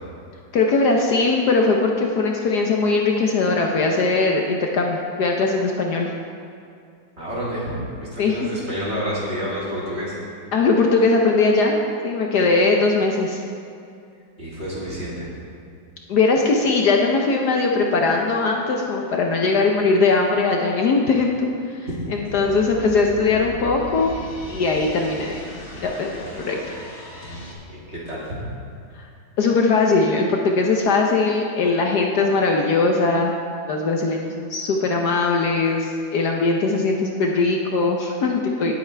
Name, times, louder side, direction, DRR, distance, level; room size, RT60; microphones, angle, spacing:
voice 1, 0.5-6.1 8.2-8.5 10.5-11.8 12.0-13.4 16.1-24.1 24.5-26.7 29.0-29.1 29.4-33.3 33.7-38.7, left 3 dB, 65° left, 1 dB, 1.3 m, -20 dB
voice 2, 7.2-10.1 14.4-15.3 27.9-28.3, equal, 35° right, -8 dB, 3.3 m, -29 dB
sound 1, 22.2-27.5, left 1 dB, 40° left, 1.7 m, -38 dB
18.0 x 8.1 x 3.4 m, 2.4 s
omnidirectional pair, 2.1 m